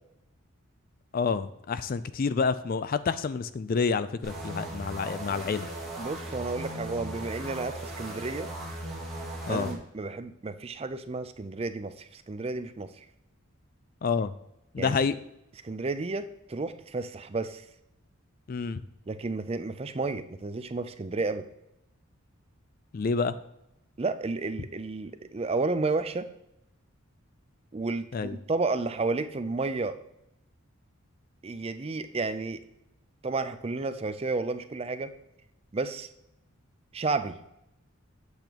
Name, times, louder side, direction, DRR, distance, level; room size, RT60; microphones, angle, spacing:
voice 1, 1.1-5.7 9.5-9.7 14.0-14.3 14.7-15.2 18.5-18.8 22.9-23.4 28.1-28.4, left 5 dB, 40° left, 14 dB, 0.3 m, -28 dB
sound 1, 4.2-9.8, right 1 dB, ahead, 2.0 m, -38 dB
voice 2, 6.0-8.5 9.5-12.9 14.8-14.9 15.6-17.6 19.1-21.4 24.0-26.3 27.7-29.9 31.4-32.6 33.2-35.1 35.7-36.1 36.9-37.3, right 3 dB, 25° right, 10 dB, 0.4 m, -32 dB
8.1 x 6.9 x 2.9 m, 0.83 s
head